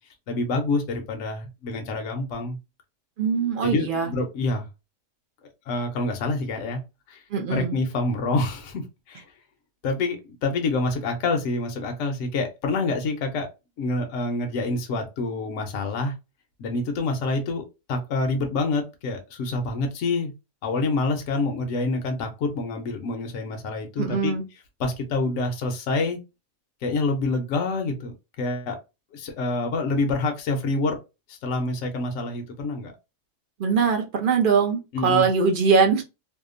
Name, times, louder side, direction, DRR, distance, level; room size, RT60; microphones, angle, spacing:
voice 1, 0.3-2.6 3.6-4.7 5.7-6.8 7.1-7.2 7.5-9.2 9.8-13.5 13.8-16.1 16.6-20.3 20.6-24.3 24.8-26.2 26.8-28.8 29.1-31.0 31.3-32.9 34.9-35.3, left 3 dB, 70° left, 4 dB, 0.9 m, -27 dB
voice 2, 3.2-4.1 7.3-7.8 24.0-24.4 33.6-36.0, right 5 dB, 60° right, 3 dB, 0.5 m, -22 dB
2.7 x 2.1 x 2.4 m, 0.26 s
omnidirectional pair, 1.4 m